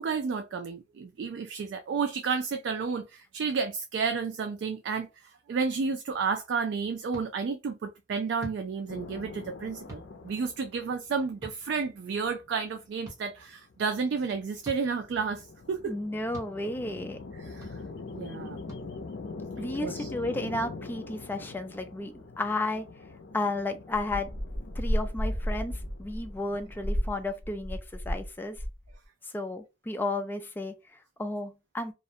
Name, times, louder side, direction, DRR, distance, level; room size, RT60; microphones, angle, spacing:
voice 1, 0.0-15.9 17.4-17.8 18.1-18.6 19.6-20.1, right 5 dB, 70° right, 0.3 m, -31 dB
sound 1, 7.1-7.3 8.4-8.6 9.9-10.1 11.4-11.6 13.0-13.2 14.6-14.8 16.3-16.5 17.6-17.7 18.7-18.8, equal, 15° right, 0.9 m, -42 dB
sound 2, 8.9-27.2, left 3 dB, 70° left, 0.5 m, -44 dB
voice 2, 15.8-17.2 19.6-22.8 23.3-24.3 24.8-28.6 29.3-31.9, left 2 dB, 10° left, 0.3 m, -33 dB
sound 3, 23.9-28.3 28.5-28.9, equal, 50° right, 0.9 m, -32 dB
2.4 x 2.1 x 2.7 m
head